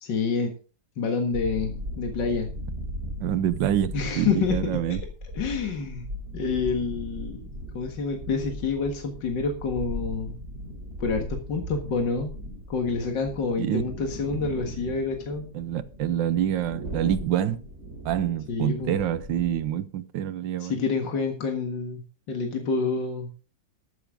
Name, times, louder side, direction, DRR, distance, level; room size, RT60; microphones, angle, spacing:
voice 1, 0.0-0.5 1.0-2.5 3.9-4.7 5.3-6.1 6.3-10.4 11.0-12.3 12.7-15.4 18.5-18.9 20.6-23.3, left 5 dB, 75° left, 2.3 m, -28 dB
sound 1, 1.3-19.8, equal, 35° right, 4.1 m, -38 dB
voice 2, 3.2-5.0 13.6-13.8 15.5-17.6 18.0-20.7, right 10 dB, 85° right, 1.5 m, -26 dB
13.5 x 9.3 x 3.7 m
omnidirectional pair, 2.0 m